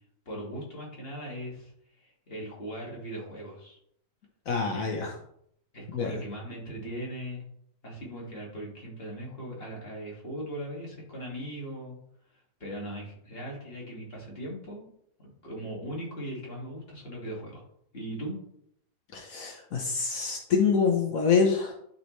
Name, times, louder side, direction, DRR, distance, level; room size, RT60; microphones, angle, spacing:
voice 1, 0.3-3.8 4.7-4.9 5.7-7.5 7.8-12.0 12.3-14.9 15.4-17.6 17.9-18.4, right 1 dB, 40° left, -3 dB, 2.3 m, -39 dB
voice 2, 4.5-5.1 5.9-6.1 19.1-21.7, left 5 dB, 70° left, 1 dB, 1.4 m, -26 dB
11.0 x 4.3 x 3.1 m, 0.70 s
omnidirectional pair, 1.5 m